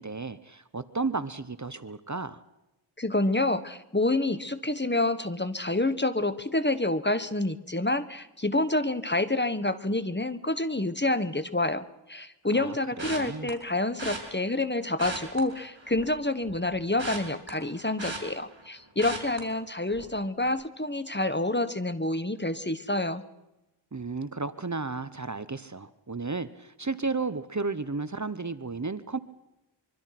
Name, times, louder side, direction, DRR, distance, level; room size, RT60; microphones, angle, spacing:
voice 1, 0.0-2.4 12.5-13.5 23.9-29.2, right 4 dB, 40° right, 14 dB, 1.0 m, -33 dB
voice 2, 3.0-23.2, left 2 dB, 25° left, 12 dB, 1.4 m, -28 dB
sound 1, 13.0-13.5 14.0-14.2 14.9-16.1 16.4-18.7 19.0-19.4 19.9-20.1 20.4-20.5, right 2 dB, 70° right, 5.3 m, -37 dB
25.0 x 24.0 x 6.0 m, 0.94 s
wide cardioid pair, 50°, 46 cm